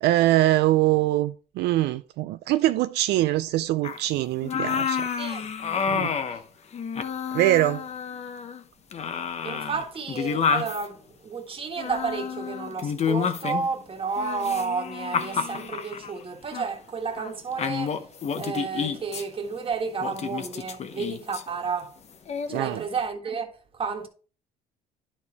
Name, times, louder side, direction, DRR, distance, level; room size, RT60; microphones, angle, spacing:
voice 1, 0.0-5.1 5.9-6.1 7.3-7.8 22.5-22.8, right 15 dB, 80° right, 0.4 m, -23 dB
sound 1, 3.8-4.0 4.4-6.4 6.7-8.6 8.9-10.8 11.8-13.7 14.2-16.1 16.5-16.7 17.2-17.3 17.6-19.2 20.0-21.4 22.3-22.6, left 6 dB, 40° left, 0.8 m, -29 dB
voice 2, 5.2-5.5 9.4-18.0 18.4-22.0 22.5-24.1, right 5 dB, 30° right, 1.5 m, -31 dB
11.0 x 4.4 x 4.2 m
cardioid pair, 110°, 17 cm